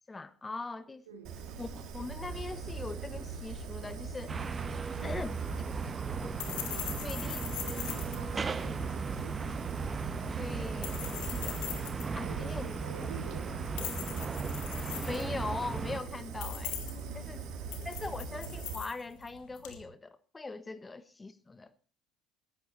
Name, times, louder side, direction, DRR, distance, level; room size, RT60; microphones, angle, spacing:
voice 1, 0.1-1.0 1.6-4.3 5.0-5.4 7.0-7.8 10.4-11.9 12.1-12.7 15.1-16.9 17.1-17.5 17.8-21.7, left 3 dB, 20° left, 1.4 m, -41 dB
voice 2, 1.1-1.4 4.9-5.9 6.7-6.9 7.6-9.4 12.1-14.4 16.9-17.5, right 5 dB, 80° right, 2.6 m, -50 dB
Fire, 1.2-18.7, right 5 dB, 60° right, 3.7 m, -41 dB
sound 1, 4.3-16.0, right 5 dB, 30° right, 1.3 m, -37 dB
sound 2, 4.8-19.8, left 11 dB, 70° left, 2.6 m, -43 dB
18.0 x 13.5 x 4.3 m
hypercardioid pair, 60°, 0 cm